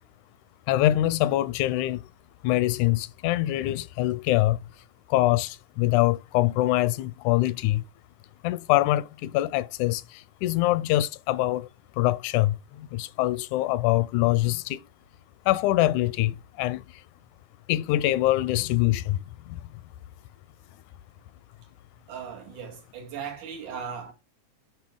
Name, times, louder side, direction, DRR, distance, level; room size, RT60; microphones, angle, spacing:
voice 1, 0.7-2.0 2.4-4.6 5.1-7.8 8.4-11.7 12.0-14.8 15.5-16.9 17.7-19.6, left 16 dB, 85° left, 2.0 m, -24 dB
voice 2, 22.1-24.1, right 7 dB, 90° right, 3.6 m, -37 dB
9.0 x 5.6 x 3.7 m
omnidirectional pair, 3.4 m